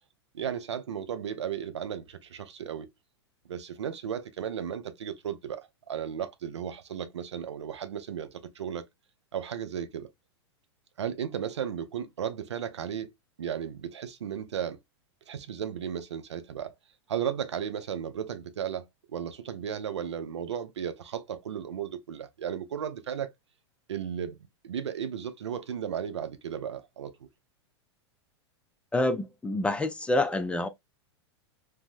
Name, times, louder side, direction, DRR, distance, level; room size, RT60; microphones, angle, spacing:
voice 1, 0.3-2.9 3.5-8.8 9.3-10.1 11.0-13.1 13.4-14.8 15.3-16.7 17.1-23.3 23.9-24.4 24.6-27.1, right 8 dB, 85° right, 0.5 m, -35 dB
voice 2, 28.9-30.7, left 2 dB, 10° left, 0.4 m, -27 dB
3.3 x 2.1 x 2.6 m
hypercardioid pair, 105°, 14 cm